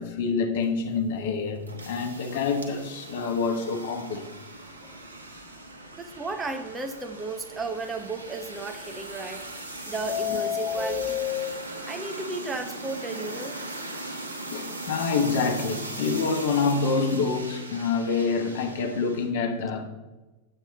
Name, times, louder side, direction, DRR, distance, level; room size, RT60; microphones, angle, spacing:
voice 1, 0.0-4.3 14.5-19.8, left 4 dB, 55° left, 1.1 m, -27 dB
sound 1, 0.6-19.3, right 2 dB, 75° right, 1.1 m, -39 dB
Subway metro underground, 4.6-4.9 5.3-5.4 5.7-5.8 6.3-6.4 8.9-9.5 9.9-11.5, left 11 dB, 15° left, 3.4 m, -30 dB
voice 2, 5.9-9.5 9.8-11.3 11.9-13.6, right 3 dB, 15° right, 0.8 m, -34 dB
8.2 x 7.9 x 4.1 m
figure-of-eight pair, 90°, 0 cm